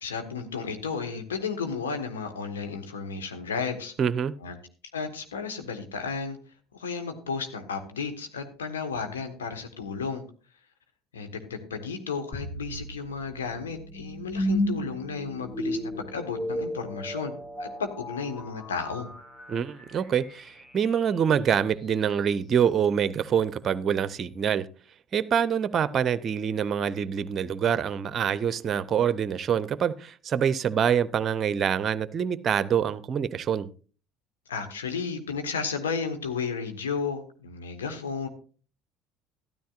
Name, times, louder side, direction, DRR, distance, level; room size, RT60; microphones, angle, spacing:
voice 1, 0.0-3.9 4.4-4.6 4.9-6.4 6.7-10.2 11.1-17.3 17.6-19.1 34.5-38.3, left 5 dB, 80° left, 1.4 m, -33 dB
voice 2, 4.0-4.3 19.5-24.7 25.1-33.7, right 8 dB, 40° right, 0.6 m, -25 dB
sound 1, 12.3-21.4, equal, 25° left, 2.1 m, -34 dB
12.5 x 12.0 x 2.5 m
figure-of-eight pair, 60°, 0 cm